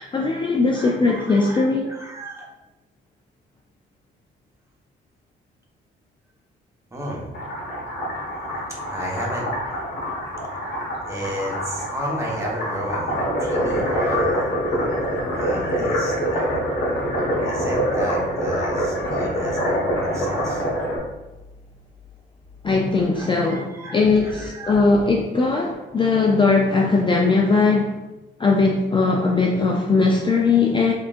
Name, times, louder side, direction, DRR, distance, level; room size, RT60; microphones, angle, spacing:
voice 1, 0.0-1.9 22.6-28.0 28.4-30.9, left 3 dB, 25° left, 0 dB, 0.4 m, -19 dB
voice 2, 0.7-2.5 6.9-7.3 8.7-9.5 10.5-16.6 17.4-20.6 23.1-24.8, equal, 15° right, -3 dB, 1.1 m, -33 dB
sound 1, 7.3-21.0, equal, 65° left, 1.4 m, -25 dB
3.7 x 3.5 x 2.5 m, 1.1 s
cardioid pair, 90°, 20 cm